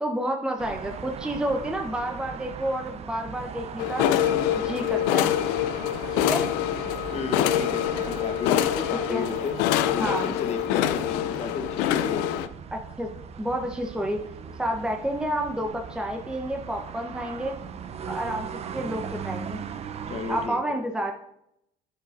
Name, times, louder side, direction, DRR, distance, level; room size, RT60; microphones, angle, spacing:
voice 1, 0.0-4.1 4.6-5.4 6.1-6.5 9.1-9.3 10.0-10.3 12.7-13.1 13.4-14.2 14.6-17.6 18.1-19.6 20.3-21.1, right 1 dB, 5° right, 2 dB, 0.8 m, -30 dB
sound 1, 0.6-20.5, right 7 dB, 40° right, 0.6 m, -39 dB
sound 2, 3.8-12.5, left 11 dB, 85° left, 0.5 m, -25 dB
voice 2, 7.1-9.6 9.9-12.3 20.1-20.8, left 5 dB, 45° left, 6 dB, 1.1 m, -33 dB
9.2 x 7.5 x 2.6 m, 0.76 s
supercardioid pair, 85°, 16 cm